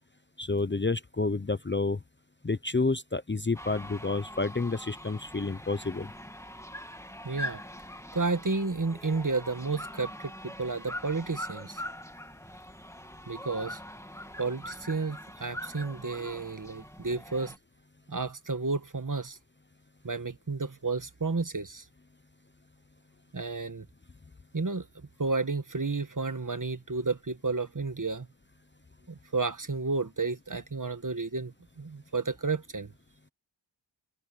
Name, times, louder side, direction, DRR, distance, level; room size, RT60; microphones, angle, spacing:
voice 1, 0.4-2.0 2.4-6.1, left 3 dB, 25° left, 0.7 m, -29 dB
sound 1, 3.5-17.6, equal, 5° left, 2.4 m, -43 dB
voice 2, 7.2-7.6 8.1-11.8 13.3-13.8 14.4-17.6 18.1-19.4 20.0-21.9 23.3-23.9 24.5-24.9 25.2-28.3 29.1-32.9, right 3 dB, 40° right, 1.6 m, -32 dB
wide cardioid pair, 45°, 48 cm